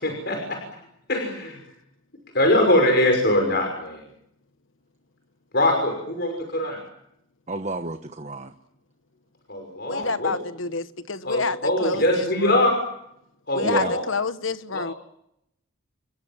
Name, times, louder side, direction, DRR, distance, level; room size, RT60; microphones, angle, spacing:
voice 1, 0.0-0.6 1.1-1.6 2.3-4.0 5.5-6.8 9.5-10.3 11.2-12.8 13.5-14.0 14.7-15.0, left 1 dB, 55° left, 6.0 m, -22 dB
voice 2, 7.5-8.5 13.6-13.9, right 2 dB, 35° right, 1.2 m, -30 dB
voice 3, 9.9-12.6 13.5-14.9, left 4 dB, 80° left, 1.4 m, -28 dB
29.5 x 22.5 x 7.4 m
head